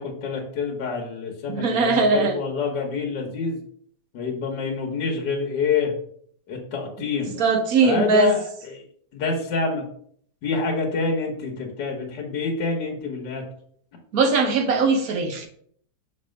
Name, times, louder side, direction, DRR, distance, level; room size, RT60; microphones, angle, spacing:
voice 1, 0.0-3.6 4.1-6.0 6.5-7.4 7.8-8.8 9.1-9.8 10.4-13.4, left 5 dB, 70° left, 0 dB, 1.6 m, -27 dB
voice 2, 1.5-2.4 7.4-8.4 14.1-15.5, right 4 dB, 60° right, 4 dB, 1.2 m, -20 dB
6.0 x 3.3 x 5.0 m, 0.62 s
omnidirectional pair, 2.0 m